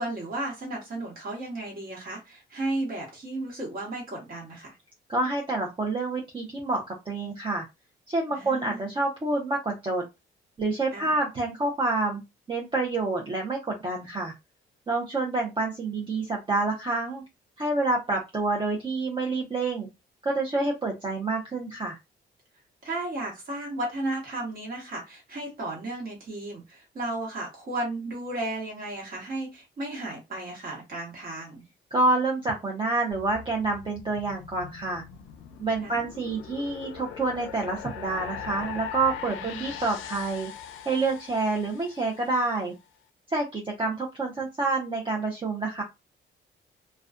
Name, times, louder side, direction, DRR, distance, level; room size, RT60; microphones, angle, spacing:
voice 1, 0.0-4.7 8.3-8.8 10.9-11.1 22.8-31.6 35.8-36.0 39.3-39.7, right 2 dB, 45° right, -3 dB, 1.3 m, -34 dB
voice 2, 5.1-7.6 8.1-10.0 10.6-12.2 12.5-14.3 14.9-17.2 17.6-19.9 20.2-22.0 31.9-35.0 35.6-40.5 40.9-42.7 43.3-45.8, right 3 dB, 25° right, -1 dB, 0.6 m, -28 dB
sound 1, 33.1-42.5, left 8 dB, 90° left, 0.4 m, -41 dB
2.3 x 2.2 x 2.4 m, 0.23 s
cardioid pair, 90°, 20 cm